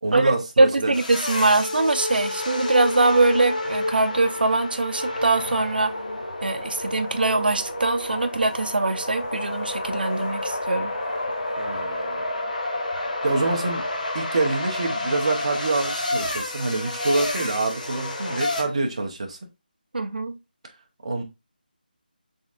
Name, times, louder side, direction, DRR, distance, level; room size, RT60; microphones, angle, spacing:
voice 1, 0.0-0.9 11.6-12.2 13.2-13.9 14.1-19.4 21.0-21.2, right 2 dB, 40° right, 0.8 m, -26 dB
voice 2, 0.6-5.9 6.4-10.9 19.9-20.4, right 2 dB, 70° right, 0.7 m, -22 dB
sound 1, 0.9-18.6, left 1 dB, 50° left, 1.1 m, -29 dB
3.9 x 3.6 x 2.5 m
figure-of-eight pair, 175°, 5 cm